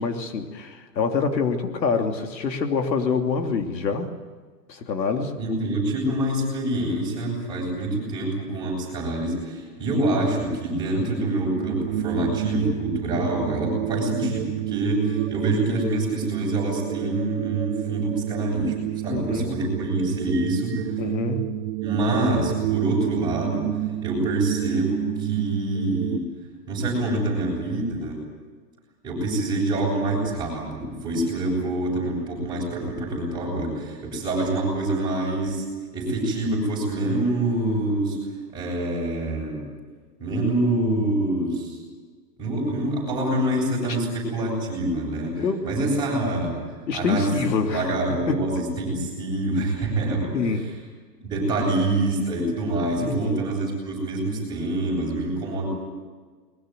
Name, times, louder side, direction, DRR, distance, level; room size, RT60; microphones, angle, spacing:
voice 1, 0.0-4.1 4.7-5.3 13.8-14.1 19.1-19.6 21.0-21.6 45.4-45.7 46.3-46.6 46.9-48.4 50.3-50.8 53.0-53.4, left 5 dB, 85° left, 5 dB, 3.1 m, -26 dB
voice 2, 5.4-18.7 19.0-21.0 21.8-23.7 24.0-26.2 26.7-28.2 29.0-35.6 35.9-38.2 38.5-39.6 40.2-41.8 42.4-46.6 46.9-47.4 47.7-50.6 51.2-55.7, right 1 dB, 10° right, -3 dB, 7.7 m, -26 dB
sound 1, 11.3-26.2, right 13 dB, 40° right, 1.2 m, -29 dB
22.0 x 21.0 x 9.2 m, 1.4 s
hypercardioid pair, 170°, 50 cm